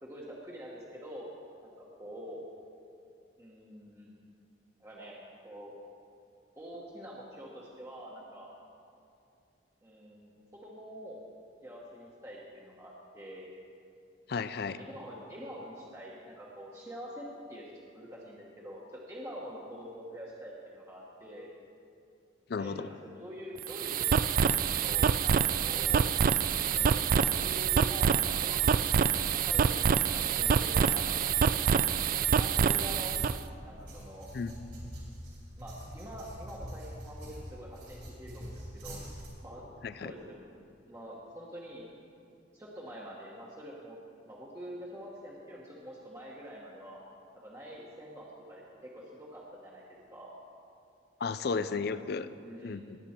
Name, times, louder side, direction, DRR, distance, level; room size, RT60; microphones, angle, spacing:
voice 1, 0.0-1.3 1.6-2.4 3.4-4.2 4.8-5.2 5.4-5.8 6.6-8.5 9.8-11.2 11.6-13.5 14.5-17.6 17.9-21.5 22.6-26.1 26.6-29.8 30.1-31.6 32.4-33.2 33.6-34.3 35.6-39.0 39.4-39.6 40.0-40.4 40.9-41.9 42.5-47.0 47.4-50.3 51.5-52.0 52.4-52.9, equal, 15° right, -5 dB, 1.2 m, -46 dB
voice 2, 14.3-14.8 22.5-22.9 34.3-34.7 39.8-40.1 51.2-52.3 52.6-53.0, left 5 dB, 60° left, 14 dB, 0.4 m, -34 dB
sound 1, 23.6-33.4, right 7 dB, 50° right, 0.3 m, -26 dB
sound 2, 33.1-39.3, equal, 65° right, 3.5 m, -45 dB
19.0 x 7.9 x 4.4 m, 2.5 s
head